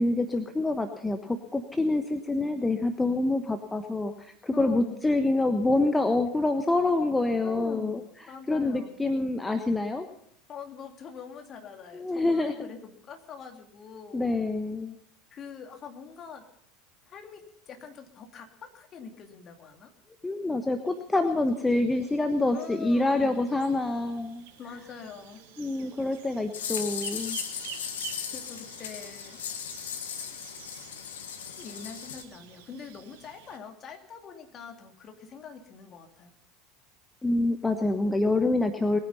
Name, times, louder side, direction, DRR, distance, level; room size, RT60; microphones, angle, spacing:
voice 1, 0.0-8.0 8.5-10.1 11.9-12.7 14.1-14.9 20.2-24.5 25.6-27.4 37.2-39.0, left 2 dB, 10° left, 7 dB, 1.2 m, -26 dB
voice 2, 4.5-5.1 7.4-8.0 8.3-8.9 10.5-14.4 15.3-16.5 17.1-19.9 22.5-23.4 24.6-25.4 28.3-29.4 30.2-30.4 31.6-36.4, left 6 dB, 40° left, 4 dB, 2.7 m, -44 dB
sound 1, 20.9-33.6, right 9 dB, 65° right, 1.8 m, -49 dB
sound 2, 26.5-32.2, left 8 dB, 70° left, 1.4 m, -37 dB
20.5 x 9.8 x 5.6 m, 0.73 s
figure-of-eight pair, 75°, 0 cm